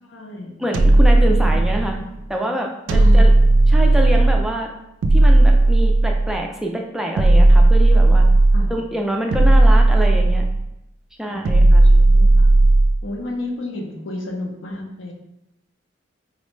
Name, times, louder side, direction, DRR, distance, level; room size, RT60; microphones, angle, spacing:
voice 1, 0.0-0.6 2.9-3.3 8.5-8.7 11.3-12.5 13.0-15.1, left 1 dB, 80° left, 0 dB, 0.6 m, -31 dB
voice 2, 0.6-2.0 2.3-3.3 3.7-4.7 5.1-8.3 8.7-10.4 11.2-11.8, equal, 5° right, 1 dB, 0.3 m, -26 dB
sound 1, 0.7-2.1 2.9-4.5 5.0-6.4 7.2-8.8 9.3-10.7 11.4-13.1, right 2 dB, 90° right, 0.3 m, -13 dB
3.8 x 2.1 x 3.1 m, 0.85 s
head